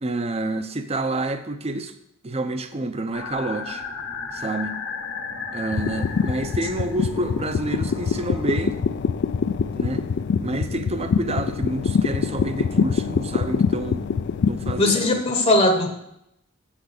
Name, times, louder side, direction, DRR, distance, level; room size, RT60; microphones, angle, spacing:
voice 1, 0.0-1.9 2.2-3.8 4.3-4.8 5.5-8.8 9.7-10.1 10.4-14.1 14.5-15.2, right 2 dB, 30° right, 9 dB, 0.6 m, -28 dB
sound 1, 3.1-8.6, left 5 dB, 70° left, 1.5 m, -35 dB
sound 2, 5.7-14.8, left 6 dB, 55° left, 0.3 m, -24 dB
voice 2, 14.8-15.9, left 2 dB, 30° left, 4 dB, 0.9 m, -19 dB
7.6 x 6.0 x 6.6 m, 0.80 s
head